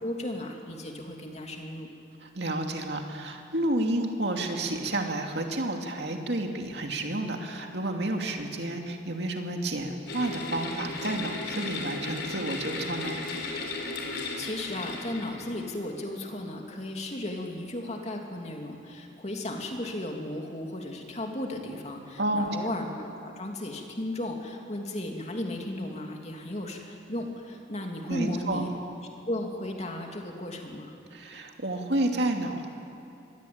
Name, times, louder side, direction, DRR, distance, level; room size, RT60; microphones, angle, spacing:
voice 1, 0.0-1.9 14.0-28.7 29.3-30.9, left 1 dB, 35° left, 1 dB, 2.9 m, -35 dB
voice 2, 2.2-13.2 22.2-22.5 28.1-28.7 31.1-32.7, right 1 dB, 60° right, 3 dB, 2.6 m, -30 dB
sound 1, 10.1-15.7, left 3 dB, 70° left, 4.0 m, -35 dB
25.5 x 20.5 x 8.9 m, 2.8 s
head